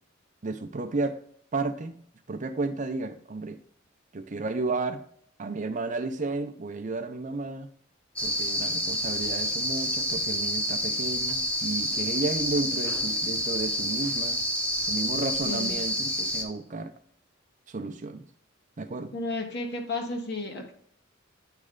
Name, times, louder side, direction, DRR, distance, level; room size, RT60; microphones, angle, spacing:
voice 1, 0.4-1.2 1.5-2.0 2.3-3.6 4.1-5.0 5.4-7.7 8.2-14.4 14.8-16.9 17.7-18.3 18.8-19.1, right 3 dB, 40° right, 8 dB, 0.5 m, -32 dB
sound 1, 8.2-16.4, equal, 5° left, 0.9 m, -28 dB
voice 2, 15.4-15.8 19.1-20.7, left 2 dB, 55° left, 2 dB, 1.4 m, -33 dB
9.5 x 3.2 x 3.7 m, 0.63 s
head